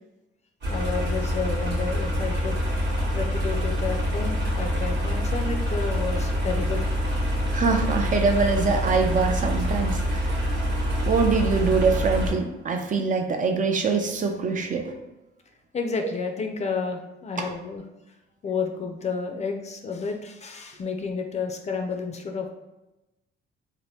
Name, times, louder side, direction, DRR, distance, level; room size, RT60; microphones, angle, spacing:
sound 1, 0.6-12.3, equal, 60° right, 1.1 m, -26 dB
voice 1, 0.7-2.6 3.1-7.3 15.7-17.8 18.4-22.5, left 5 dB, 35° left, 4 dB, 0.4 m, -31 dB
voice 2, 7.5-10.2 11.0-14.9 17.4-17.5, right 4 dB, 40° right, 5 dB, 0.4 m, -24 dB
2.8 x 2.1 x 3.2 m, 0.99 s
cardioid pair, 90°, 20 cm